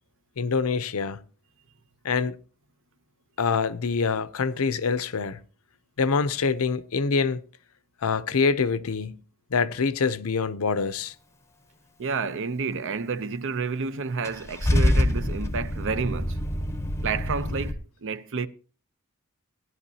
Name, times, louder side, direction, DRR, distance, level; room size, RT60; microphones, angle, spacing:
voice 1, 0.4-1.2 2.0-2.4 3.4-5.4 6.0-7.4 8.0-9.2 9.5-11.1, left 5 dB, 70° left, 0.6 m, -25 dB
voice 2, 12.0-16.4 17.0-18.5, right 5 dB, 60° right, 0.6 m, -30 dB
Car / Engine starting / Idling, 14.2-17.7, left 1 dB, 15° left, 0.7 m, -25 dB
16.5 x 11.0 x 2.8 m
head